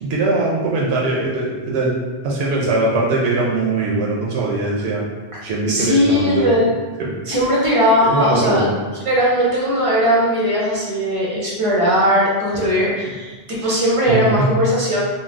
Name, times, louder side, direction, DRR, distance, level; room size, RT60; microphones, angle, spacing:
voice 1, 0.0-2.0 2.2-5.0 5.4-6.6 8.0-8.7 14.1-14.5, right 2 dB, 80° right, -4 dB, 0.8 m, -21 dB
voice 2, 5.7-6.7 7.3-8.7 9.0-15.0, equal, 35° right, -5 dB, 0.6 m, -18 dB
2.4 x 2.3 x 3.3 m, 1.3 s
omnidirectional pair, 1.1 m